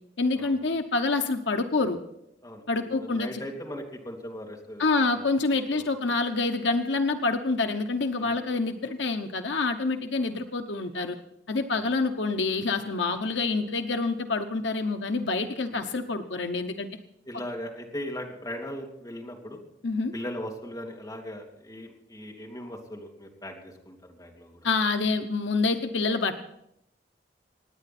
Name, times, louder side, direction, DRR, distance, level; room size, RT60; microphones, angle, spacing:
voice 1, 0.2-2.0 2.7-3.4 4.8-11.2 11.5-16.9 19.8-20.1 24.6-26.4, left 3 dB, 75° left, 7 dB, 0.9 m, -27 dB
voice 2, 2.4-5.3 5.7-5.9 8.2-8.4 11.8-11.9 15.7-15.8 17.2-19.6 20.1-24.7, left 1 dB, 20° left, 0 dB, 2.7 m, -39 dB
25.5 x 9.8 x 4.3 m, 0.77 s
head